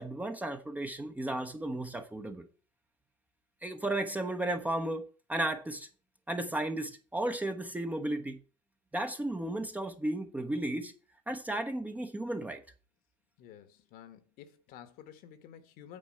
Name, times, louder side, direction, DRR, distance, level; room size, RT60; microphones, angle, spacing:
voice 1, 0.0-2.5 3.6-5.9 6.3-8.4 8.9-10.9 11.3-12.6, right 1 dB, 5° right, 1.0 m, -34 dB
voice 2, 13.4-16.0, left 9 dB, 45° left, 1.4 m, -51 dB
9.0 x 4.4 x 7.0 m
figure-of-eight pair, 80°, 20 cm